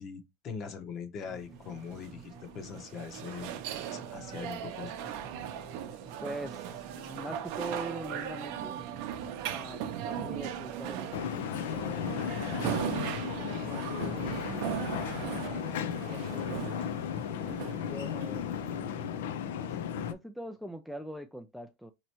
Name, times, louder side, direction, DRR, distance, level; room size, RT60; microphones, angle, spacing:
voice 1, 0.0-3.5 3.9-5.1 12.5-12.9 17.1-17.3 19.7-20.1, left 6 dB, 35° left, 1.0 m, -42 dB
sound 1, 1.2-19.1, right 4 dB, 15° right, 0.8 m, -52 dB
sound 2, 1.7-18.7, right 9 dB, 55° right, 0.6 m, -38 dB
voice 2, 6.2-9.0 9.5-12.7 13.7-14.4 14.7-16.6 17.3-19.2 20.1-21.9, right 1 dB, ahead, 0.3 m, -44 dB
sound 3, 11.1-20.1, left 8 dB, 75° left, 0.5 m, -35 dB
4.2 x 3.0 x 3.0 m
supercardioid pair, 130°, 0 cm